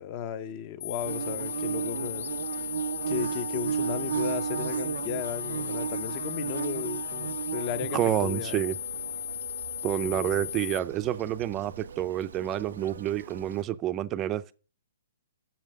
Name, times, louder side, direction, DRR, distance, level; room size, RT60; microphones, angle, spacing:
voice 1, 0.0-2.3 3.1-8.6 10.0-10.5, left 8 dB, 30° left, 0.7 m, -35 dB
sound 1, 0.8-10.8, left 11 dB, 50° left, 1.4 m, -36 dB
Bird / Buzz, 1.0-13.6, right 7 dB, 75° right, 0.4 m, -35 dB
voice 2, 7.9-8.8 9.8-14.5, right 12 dB, 20° right, 0.5 m, -29 dB
7.5 x 7.4 x 6.4 m
hypercardioid pair, 160°, 0 cm